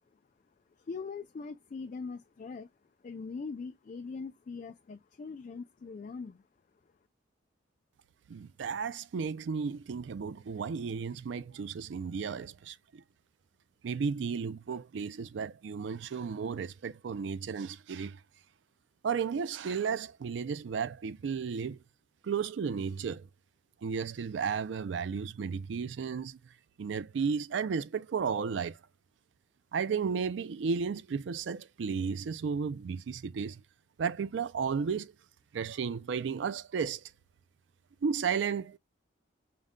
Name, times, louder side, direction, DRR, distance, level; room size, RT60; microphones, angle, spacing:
voice 1, 0.8-2.7 3.0-6.4, left 4 dB, 40° left, 0.3 m, -41 dB
voice 2, 8.3-13.0 13.8-18.2 19.0-21.8 22.2-23.3 23.8-26.4 26.8-28.8 29.7-33.6 34.0-35.1 35.5-37.0 38.0-38.8, right 6 dB, 75° right, 0.4 m, -33 dB
5.2 x 2.1 x 3.6 m
head